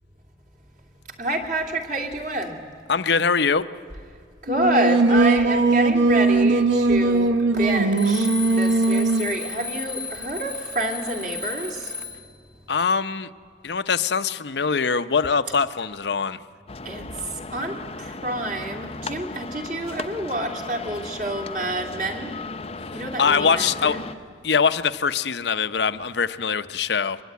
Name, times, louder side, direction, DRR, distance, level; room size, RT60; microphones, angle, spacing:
voice 1, 1.2-2.6 4.4-11.9 16.8-22.4 22.9-24.0, right 1 dB, 45° right, 2 dB, 2.7 m, -28 dB
voice 2, 2.9-3.7 12.7-13.3 13.6-16.4 23.2-24.0 24.4-27.2, left 5 dB, 70° left, 12 dB, 0.7 m, -22 dB
Singing, 4.5-9.3, right 3 dB, 85° right, 0.8 m, -19 dB
Alarm, 7.9-12.4, left 4 dB, 5° right, 1.4 m, -34 dB
sound 1, 16.7-24.2, left 3 dB, 35° left, 0.6 m, -36 dB
24.0 x 22.0 x 9.5 m, 2.1 s
head